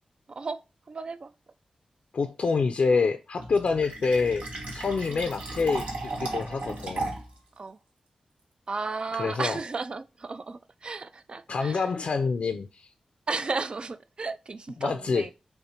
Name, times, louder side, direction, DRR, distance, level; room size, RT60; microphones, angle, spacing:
voice 1, 0.3-0.6 0.9-1.3 5.1-5.2 7.6-7.8 8.7-11.9 13.3-15.3, right 4 dB, 45° right, 0.3 m, -34 dB
voice 2, 2.1-4.5 4.7-5.9 6.2-7.2 9.2-9.6 11.5-12.9 14.8-15.2, left 4 dB, 70° left, 0.5 m, -26 dB
Fill (with liquid), 3.4-7.4, right 2 dB, 85° right, 1.3 m, -35 dB
5.5 x 2.2 x 4.3 m
cardioid pair, 70°, 2 cm